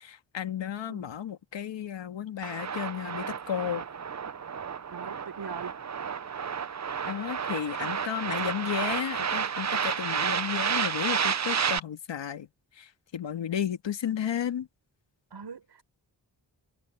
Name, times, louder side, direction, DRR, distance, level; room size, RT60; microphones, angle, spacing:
voice 1, 0.0-3.8 7.0-12.5 12.7-14.7, left 9 dB, 85° left, 1.8 m, -33 dB
sound 1, 2.4-11.8, right 7 dB, 40° right, 0.8 m, -31 dB
voice 2, 4.9-5.7 7.8-7.9 15.3-15.8, right 6 dB, 65° right, 4.7 m, -41 dB
cardioid pair, 60°, 43 cm